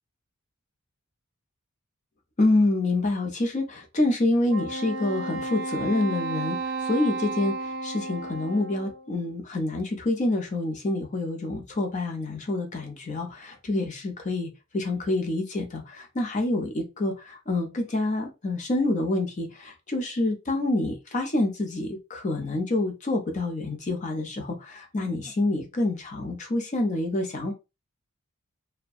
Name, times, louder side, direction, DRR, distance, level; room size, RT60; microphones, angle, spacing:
voice 1, 2.4-27.5, left 2 dB, 35° left, 0.5 m, -27 dB
Wind instrument woodwind instrument, 4.5-9.1, right 3 dB, 45° right, 0.4 m, -33 dB
2.6 x 2.1 x 2.3 m
head